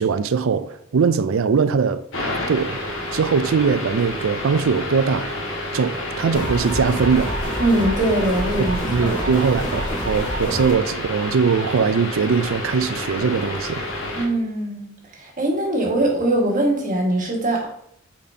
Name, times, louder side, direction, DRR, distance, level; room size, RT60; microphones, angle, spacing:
voice 1, 0.0-2.0 2.5-2.8 3.1-5.4 5.7-7.4 8.9-13.9, right 5 dB, 85° right, 0.4 m, -21 dB
sound 1, 2.1-14.3, left 1 dB, 70° left, 1.5 m, -29 dB
sound 2, 6.3-10.7, equal, 40° left, 1.5 m, -28 dB
voice 2, 7.6-9.3 14.1-14.9 15.2-17.7, right 1 dB, 40° right, 1.7 m, -22 dB
8.3 x 4.3 x 2.8 m
head